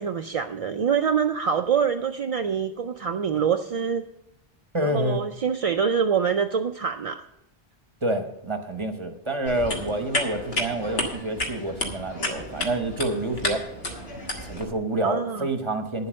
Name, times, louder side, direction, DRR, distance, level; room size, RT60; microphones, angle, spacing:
voice 1, 0.0-4.1 4.8-7.2 15.0-15.5, right 7 dB, 50° right, 6 dB, 0.4 m, -25 dB
voice 2, 4.7-5.2 8.0-13.6 14.4-16.1, right 1 dB, 30° right, 6 dB, 1.0 m, -28 dB
sound 1, 9.4-14.6, left 1 dB, 70° left, 1.8 m, -31 dB
10.0 x 7.6 x 6.3 m, 0.79 s
omnidirectional pair, 1.1 m